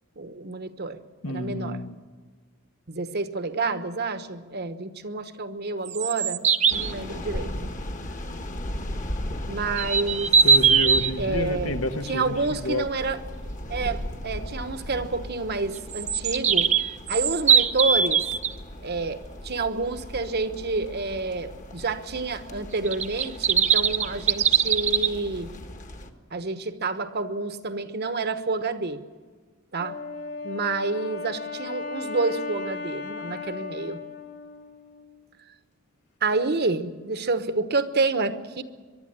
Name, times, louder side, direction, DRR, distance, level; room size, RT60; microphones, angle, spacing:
voice 1, 0.2-1.0 1.2-1.8 2.9-7.7 9.5-10.3 11.2-11.8 12.1-13.2 13.7-16.7 17.1-18.2 18.8-19.2 19.4-25.5 26.3-29.0 29.7-30.0 30.4-34.0 36.2-38.6, right 3 dB, 50° right, 11 dB, 1.1 m, -29 dB
voice 2, 1.2-1.9 10.4-12.9, left 1 dB, 80° left, 8 dB, 1.4 m, -29 dB
sound 1, 5.8-6.9 9.8-11.1 15.9-18.5 22.9-25.1, right 6 dB, 35° right, 0.7 m, -21 dB
sound 2, 6.7-26.1, left 1 dB, 40° left, 1.5 m, -37 dB
Wind instrument woodwind instrument, 29.8-35.2, left 4 dB, 55° left, 3.0 m, -36 dB
23.5 x 11.5 x 10.0 m, 1.4 s
head